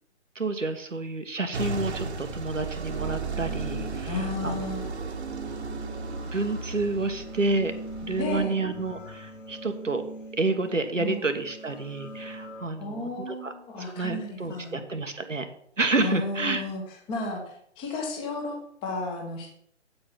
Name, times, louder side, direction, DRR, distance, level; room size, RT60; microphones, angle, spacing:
voice 1, 0.3-4.6 6.3-7.7 8.0-10.0 10.3-13.5 13.8-15.5 15.8-16.7, right 3 dB, 85° right, 7 dB, 1.6 m, -29 dB
sound 1, 1.5-8.5, right 4 dB, 60° right, 1.6 m, -35 dB
sound 2, 2.7-12.7, right 1 dB, 90° left, 2.8 m, -43 dB
voice 2, 4.0-4.9 8.2-8.6 11.0-11.2 12.8-14.8 16.0-16.8 17.1-19.5, left 2 dB, 15° left, 1 dB, 1.5 m, -33 dB
8.7 x 7.9 x 5.7 m, 0.67 s
figure-of-eight pair, 140°, 37 cm